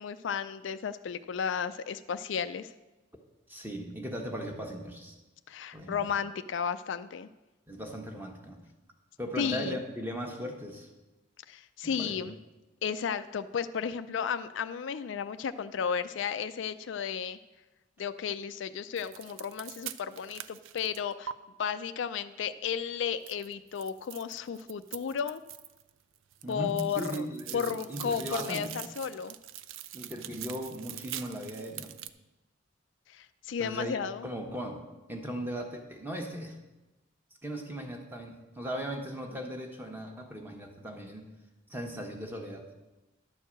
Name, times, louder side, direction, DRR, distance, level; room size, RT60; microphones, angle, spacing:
voice 1, 0.0-2.7 5.5-7.3 9.4-9.8 11.5-12.4 12.8-17.4 18.0-21.3 21.6-25.4 26.5-27.3 27.5-29.3 33.1-34.3, left 7 dB, 65° left, 12 dB, 0.4 m, -33 dB
voice 2, 3.5-5.2 5.7-6.0 7.7-8.6 9.2-10.9 11.8-12.2 26.4-28.8 29.9-31.9 33.6-36.6 37.4-41.3 41.7-42.7, equal, 10° right, 2 dB, 1.2 m, -38 dB
sound 1, 19.0-21.3 23.3-25.9 26.2-32.1, right 11 dB, 80° right, 0.4 m, -43 dB
11.0 x 4.6 x 7.5 m, 1.1 s
head